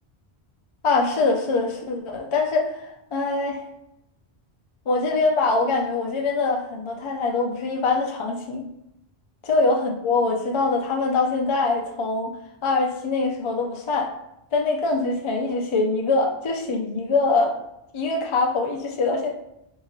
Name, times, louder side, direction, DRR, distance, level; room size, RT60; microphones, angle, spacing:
voice 1, 0.8-2.8 3.1-3.6 4.9-8.7 9.4-12.3 12.6-14.1 14.5-17.6 17.9-19.3, left 3 dB, 50° left, 1 dB, 0.3 m, -23 dB
2.7 x 2.4 x 3.0 m, 0.82 s
omnidirectional pair, 1.1 m